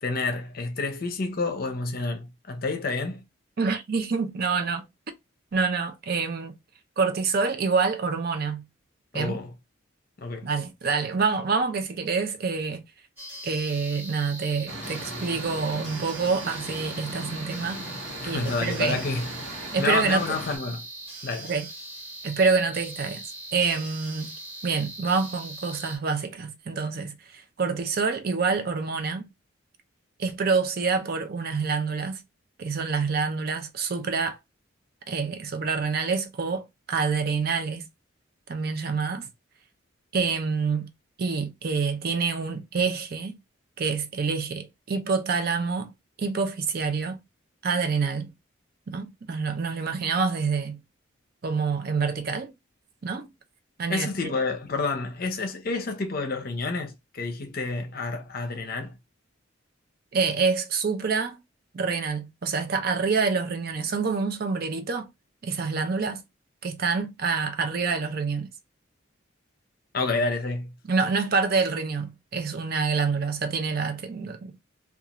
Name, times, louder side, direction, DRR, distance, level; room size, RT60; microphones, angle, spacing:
voice 1, 0.0-3.2 9.1-9.6 10.2-10.5 18.2-20.9 21.2-21.5 53.9-59.0 69.9-70.8, left 3 dB, 45° left, 0.6 m, -29 dB
voice 2, 3.6-4.8 5.5-6.5 7.0-8.6 9.1-9.4 10.4-12.8 13.4-17.9 18.2-19.0 19.7-20.2 21.5-21.7 22.2-23.2 23.5-24.4 24.6-29.3 30.2-32.2 32.6-34.4 35.1-37.9 38.5-39.3 40.1-40.9 41.2-43.4 43.8-45.9 46.2-47.2 47.6-48.3 48.9-50.8 51.4-52.5 53.0-53.3 53.8-54.1 60.1-61.4 61.7-65.1 65.4-66.2 66.6-68.5 70.9-74.5, right 4 dB, 50° right, 0.4 m, -27 dB
sound 1, 13.2-26.0, right 2 dB, 10° right, 0.9 m, -41 dB
sound 2, 14.7-20.6, right 1 dB, 65° right, 1.1 m, -38 dB
2.5 x 2.3 x 2.9 m
head